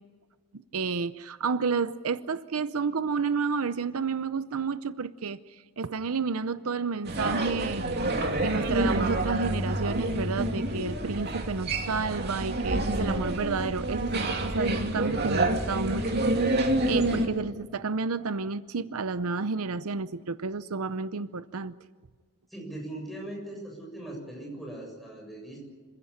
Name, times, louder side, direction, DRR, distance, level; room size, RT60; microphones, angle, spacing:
voice 1, 0.5-5.4 5.8-7.8 8.4-16.6 16.9-21.7, right 5 dB, 75° right, 14 dB, 0.7 m, -31 dB
sound 1, 7.0-17.3, right 1 dB, 45° right, 2.6 m, -28 dB
voice 2, 22.5-25.6, right 1 dB, ahead, -1 dB, 7.3 m, -40 dB
26.0 x 16.0 x 9.8 m, 1.5 s
head